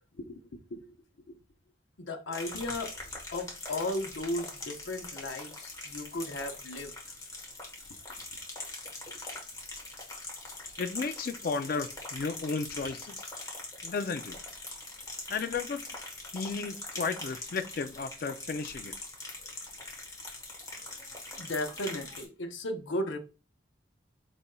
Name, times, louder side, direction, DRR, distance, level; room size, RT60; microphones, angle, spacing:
voice 1, 0.2-1.0 1.3-1.4 2.0-2.9 3.3-6.9 9.1-9.2 21.4-23.2, left 1 dB, 85° left, 0.8 m, -36 dB
sound 1, 2.3-22.2, left 2 dB, 20° left, 1.2 m, -42 dB
voice 2, 10.8-13.2 13.8-14.4 15.3-15.8 16.3-18.9, left 4 dB, 50° left, 0.4 m, -34 dB
5.1 x 4.1 x 2.2 m
head